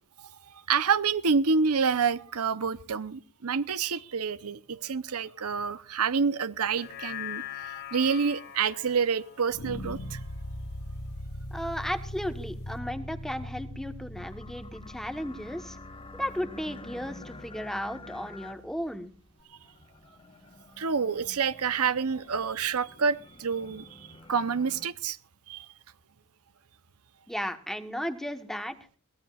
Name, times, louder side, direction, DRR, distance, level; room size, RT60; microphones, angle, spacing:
voice 1, 0.7-10.2 20.8-25.2 25.5-25.7, right 5 dB, 85° right, 0.8 m, -28 dB
sound 1, 6.7-11.2 11.6-11.7, left 12 dB, 50° left, 1.6 m, -42 dB
sound 2, 9.5-18.6, equal, 80° left, 1.4 m, -41 dB
voice 2, 11.5-15.8 16.1-19.1 27.3-28.7, equal, ahead, 1.1 m, -35 dB
sound 3, 14.2-24.9, left 2 dB, 25° left, 1.4 m, -49 dB
22.5 x 17.5 x 2.4 m
head